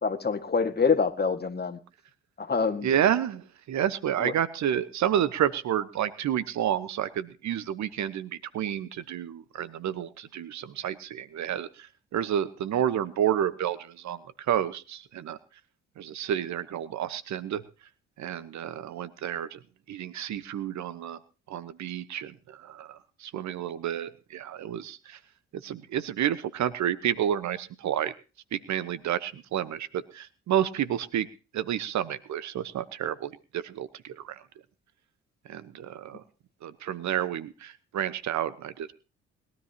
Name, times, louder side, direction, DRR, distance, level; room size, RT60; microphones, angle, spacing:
voice 1, 0.0-1.8 2.4-2.9 4.2-4.3, left 5 dB, 30° left, 8 dB, 1.9 m, -26 dB
voice 2, 2.8-15.4 16.0-17.6 18.2-19.6 19.9-21.2 21.5-25.2 25.5-28.1 28.5-31.3 31.5-34.4 35.5-36.2 36.6-38.9, right 10 dB, 60° right, 15 dB, 1.1 m, -30 dB
21.0 x 13.0 x 2.9 m, 0.32 s
hypercardioid pair, 50°, 32 cm